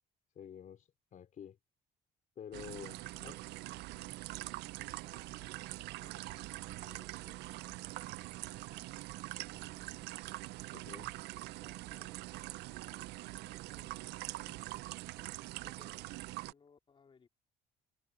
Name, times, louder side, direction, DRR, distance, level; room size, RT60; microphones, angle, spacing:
voice 1, 0.4-1.6 2.4-3.4 10.7-11.1, left 9 dB, 50° left, 3.7 m, -49 dB
sound 1, 2.5-16.5, right 19 dB, 85° right, 0.5 m, -44 dB
voice 2, 3.6-4.2 4.8-7.5 9.3-10.3 11.3-12.2 12.7-14.6 15.1-16.1 16.5-17.3, left 5 dB, 30° left, 2.6 m, -65 dB
cardioid pair, 110°, 17 cm